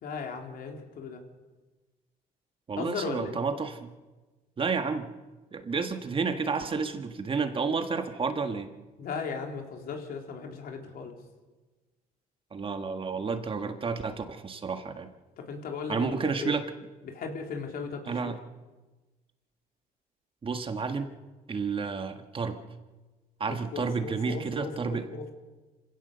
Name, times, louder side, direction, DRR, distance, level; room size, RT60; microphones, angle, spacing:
voice 1, 0.0-1.2 2.8-3.4 9.0-11.1 15.4-16.5 17.0-18.4 23.5-25.3, left 5 dB, 60° left, 3 dB, 3.6 m, -37 dB
voice 2, 2.7-3.9 4.6-5.1 5.5-8.7 12.5-15.1 15.9-16.6 18.1-18.4 20.4-21.1 21.5-22.6 23.4-25.1, right 5 dB, 30° right, 7 dB, 1.6 m, -31 dB
26.5 x 16.5 x 6.8 m, 1.2 s
cardioid pair, 110°, 17 cm